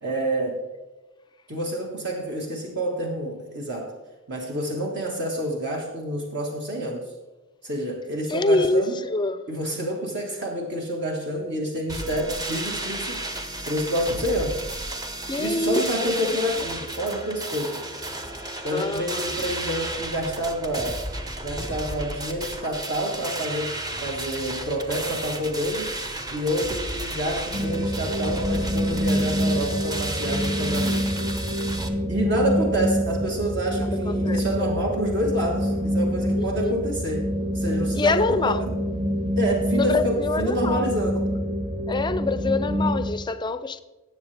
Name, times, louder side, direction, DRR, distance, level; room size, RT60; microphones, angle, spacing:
voice 1, 0.0-0.6 1.5-3.9 4.3-7.1 7.6-9.0 9.5-13.2 13.6-14.6 15.4-17.8 18.6-21.0 21.4-23.7 24.0-25.9 26.3-31.0 32.1-38.7 39.4-41.2, right 1 dB, 55° right, 1.6 m, -28 dB
voice 2, 8.3-9.5 15.3-16.1 16.6-16.7 18.7-19.5 34.1-34.7 36.3-36.8 38.0-38.7 39.8-40.9 41.9-43.8, left 3 dB, 20° left, 0.4 m, -26 dB
sound 1, 11.9-31.9, right 1 dB, 20° right, 0.8 m, -33 dB
sound 2, 27.5-43.1, equal, 40° right, 2.6 m, -26 dB
18.0 x 7.3 x 3.4 m
head